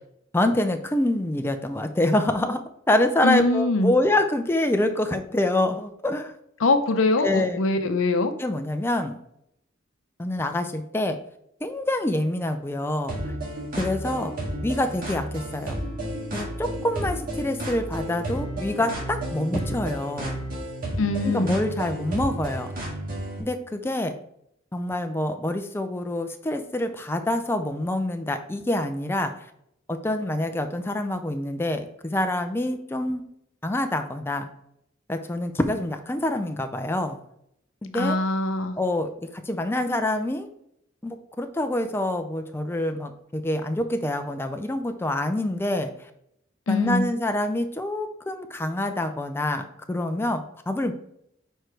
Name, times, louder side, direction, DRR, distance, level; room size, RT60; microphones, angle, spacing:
voice 1, 0.3-2.6 2.9-6.3 7.2-7.6 8.4-9.2 10.2-11.2 11.6-13.2 13.8-14.3 14.6-15.8 16.3-20.4 21.2-22.7 23.4-24.1 24.7-29.3 29.9-33.3 33.6-34.5 35.1-37.2 37.8-38.2 38.8-39.1 39.5-40.5 41.0-45.9 46.7-50.9, left 1 dB, 10° left, 6 dB, 0.4 m, -26 dB
voice 2, 3.2-3.9 6.6-8.3 21.0-21.5 37.9-38.8 46.7-47.1, left 2 dB, 85° left, 9 dB, 0.7 m, -23 dB
sound 1, 13.1-23.4, right 1 dB, 45° right, 1.9 m, -32 dB
4.9 x 4.5 x 4.6 m, 0.74 s
head